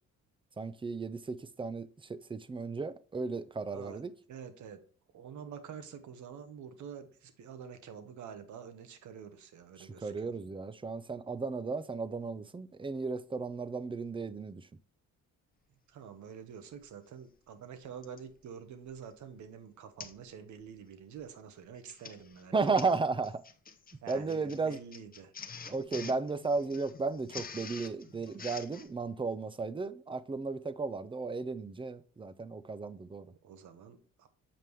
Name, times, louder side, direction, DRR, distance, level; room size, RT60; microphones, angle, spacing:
voice 1, 0.6-4.1 9.8-14.7 22.5-23.4 24.1-24.8 25.7-33.3, right 4 dB, 15° right, 0.5 m, -34 dB
voice 2, 3.7-4.0 4.3-4.8 5.1-10.3 15.9-22.7 24.0-25.3 33.4-34.3, right 7 dB, 70° right, 1.1 m, -47 dB
Printer, 16.8-16.9 18.0-18.3 18.9-19.1 19.4-19.5 20.0-20.3 20.6-20.9 21.6-28.9, left 5 dB, 30° left, 0.8 m, -47 dB
7.7 x 5.2 x 3.2 m
cardioid pair, 90°, 30 cm